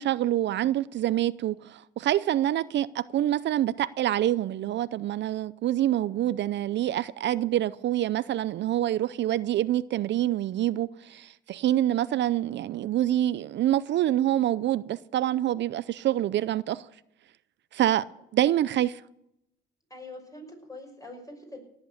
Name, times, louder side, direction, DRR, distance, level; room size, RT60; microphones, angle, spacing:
voice 1, 0.0-16.9 17.7-18.1 18.3-19.0, right 12 dB, 65° right, 0.5 m, -26 dB
voice 2, 19.9-21.6, left 2 dB, 15° left, 5.7 m, -44 dB
18.0 x 8.0 x 8.3 m
cardioid pair, 90°, 20 cm